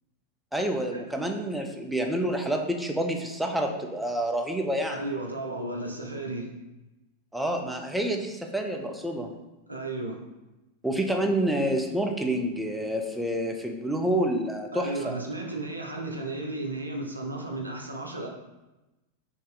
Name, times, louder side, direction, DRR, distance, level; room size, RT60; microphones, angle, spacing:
voice 1, 0.5-5.0 7.3-9.3 10.8-15.2, right 1 dB, 5° right, 2 dB, 0.5 m, -28 dB
voice 2, 4.9-6.5 9.7-10.2 14.7-18.3, right 2 dB, 80° right, 1 dB, 0.5 m, -34 dB
3.1 x 2.7 x 3.8 m, 1.0 s
figure-of-eight pair, 90°, 0 cm